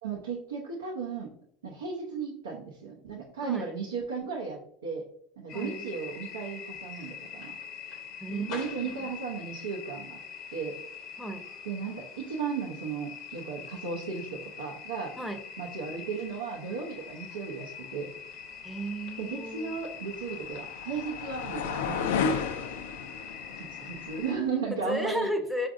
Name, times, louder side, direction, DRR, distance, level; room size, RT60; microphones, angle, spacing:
voice 1, 0.0-1.3 1.6-5.0 5.4-7.5 8.3-10.2 10.5-10.7 11.6-15.1 15.6-18.1 19.2-22.1 23.5-25.3, right 5 dB, 85° right, -2 dB, 0.6 m, -35 dB
sound 1, 5.5-24.3, left 7 dB, 55° left, 0.7 m, -43 dB
voice 2, 5.5-5.9 8.2-8.5 8.8-9.1 11.2-11.5 15.2-15.4 18.6-19.8 24.7-25.7, equal, ahead, 5 dB, 0.6 m, -34 dB
sound 2, 19.2-24.5, left 6 dB, 75° left, 0.3 m, -34 dB
5.0 x 2.5 x 2.5 m, 0.65 s
hypercardioid pair, 80°, 0 cm